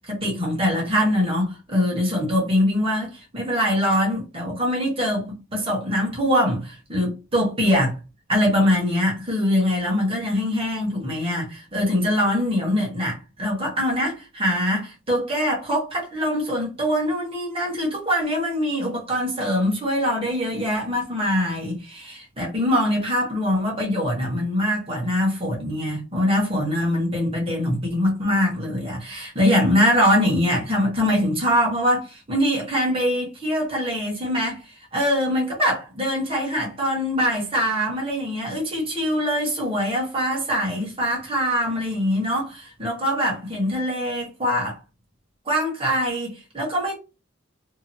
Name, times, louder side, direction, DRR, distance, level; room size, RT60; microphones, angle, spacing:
voice 1, 0.1-8.0 8.3-34.6 34.9-44.8 45.5-47.0, equal, 30° right, 1.3 m, -23 dB
2.9 x 2.6 x 2.7 m
head